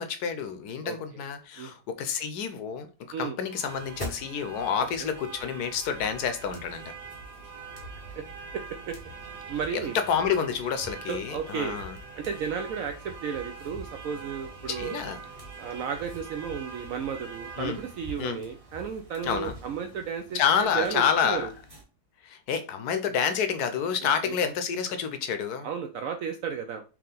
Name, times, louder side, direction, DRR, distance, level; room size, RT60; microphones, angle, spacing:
voice 1, 0.0-2.9 3.2-6.8 9.7-12.0 14.7-15.2 17.6-17.8 18.2-18.4 19.2-19.5 20.3-21.5 22.2-25.7, left 7 dB, 70° left, 9 dB, 1.0 m, -28 dB
sound 1, 3.4-21.8, right 3 dB, 20° right, 1.1 m, -43 dB
voice 2, 8.5-9.0 9.3-10.0 11.1-11.8 12.2-15.0 15.6-21.5 24.0-24.4 25.6-26.8, right 7 dB, 85° right, 6 dB, 0.7 m, -33 dB
4.7 x 3.0 x 3.8 m, 0.33 s
omnidirectional pair, 2.0 m